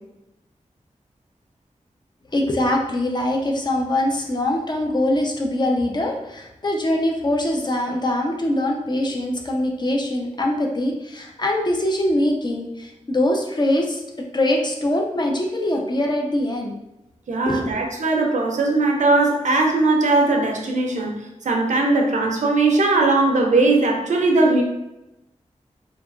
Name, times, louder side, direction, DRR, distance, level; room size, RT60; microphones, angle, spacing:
voice 1, 2.3-14.0 14.3-16.7 17.4-17.8, left 1 dB, 35° left, 1 dB, 0.5 m, -23 dB
voice 2, 17.3-24.6, right 2 dB, 75° right, 1 dB, 0.5 m, -19 dB
2.8 x 2.3 x 2.3 m, 0.91 s
wide cardioid pair, 60°, 13 cm